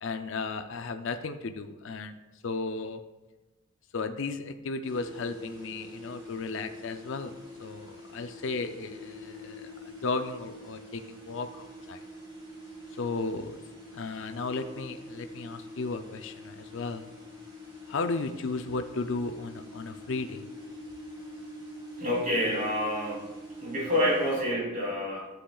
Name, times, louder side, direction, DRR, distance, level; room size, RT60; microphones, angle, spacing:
voice 1, 0.0-2.1 2.4-3.0 3.9-7.3 7.6-9.8 10.0-12.0 13.0-13.6 13.9-17.0 17.9-20.4, left 3 dB, 60° left, 8 dB, 0.4 m, -34 dB
sound 1, 4.8-24.3, equal, 20° right, 2.8 m, -45 dB
voice 2, 22.0-23.3 23.6-25.2, equal, 35° right, -4 dB, 2.9 m, -28 dB
11.5 x 7.7 x 2.3 m, 1.1 s
head